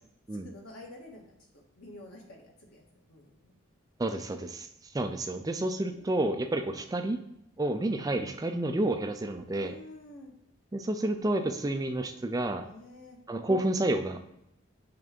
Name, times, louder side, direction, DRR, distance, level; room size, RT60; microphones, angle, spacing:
voice 1, 0.4-3.5 5.8-6.1 9.5-10.3 12.6-13.2, left 2 dB, 90° left, -1 dB, 1.8 m, -49 dB
voice 2, 4.0-7.2 7.6-9.7 10.7-12.7 13.3-14.2, right 1 dB, 15° right, 7 dB, 0.4 m, -30 dB
5.8 x 3.3 x 5.2 m, 0.77 s
head